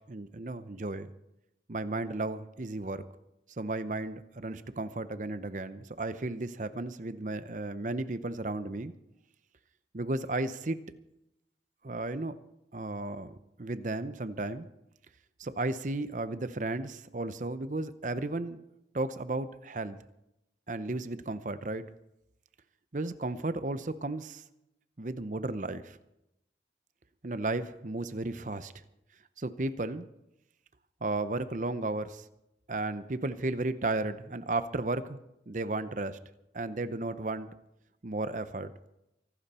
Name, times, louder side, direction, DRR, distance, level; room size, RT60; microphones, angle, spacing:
voice 1, 0.1-1.1 1.7-3.0 3.6-8.9 9.9-10.8 11.8-12.3 12.7-14.7 15.4-18.6 18.9-20.0 20.7-21.8 22.9-24.4 25.0-26.0 27.2-28.7 29.4-30.0 31.0-32.2 32.7-35.2 35.5-36.2 36.5-37.5 38.0-38.7, right 2 dB, 45° right, 12 dB, 0.7 m, -34 dB
24.0 x 12.0 x 4.3 m, 0.87 s
head